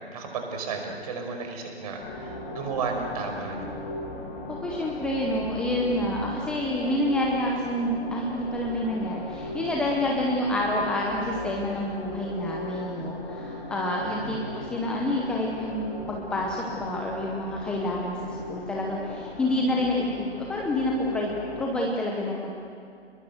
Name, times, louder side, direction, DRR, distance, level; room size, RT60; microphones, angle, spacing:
voice 1, 0.1-3.7 14.0-14.4, right 4 dB, 35° right, 3 dB, 5.5 m, -33 dB
sound 1, 2.0-21.7, left 2 dB, 20° left, 4.0 m, -37 dB
voice 2, 4.5-22.5, left 1 dB, 5° left, -1 dB, 0.8 m, -28 dB
28.5 x 22.0 x 8.0 m, 2.6 s
figure-of-eight pair, 145°, 34 cm